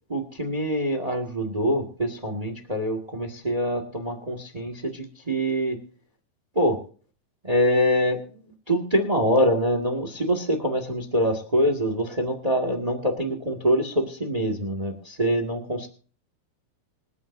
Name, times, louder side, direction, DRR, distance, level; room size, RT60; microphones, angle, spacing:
voice 1, 0.1-5.8 6.5-6.8 7.4-8.2 8.7-15.9, equal, 35° right, 4 dB, 0.6 m, -24 dB
27.0 x 9.3 x 2.7 m, 0.41 s
omnidirectional pair, 4.4 m